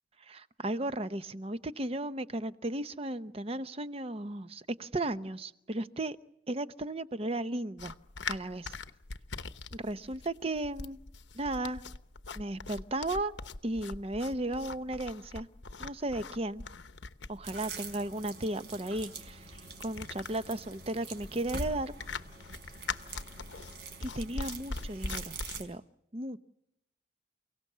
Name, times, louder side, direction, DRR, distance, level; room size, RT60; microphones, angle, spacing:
voice 1, 0.2-6.2 6.5-8.0 8.3-8.7 9.7-11.0 11.3-11.8 12.4-13.3 13.6-15.5 15.8-16.6 17.3-19.5 19.8-21.9 24.0-25.8 26.1-26.4, right 1 dB, 35° right, 13 dB, 0.8 m, -35 dB
sound 1, 7.8-25.6, left 4 dB, 85° left, 1.0 m, -42 dB
sound 2, 17.4-25.6, right 3 dB, 65° right, 4.8 m, -44 dB
29.5 x 17.5 x 7.4 m, 0.83 s
head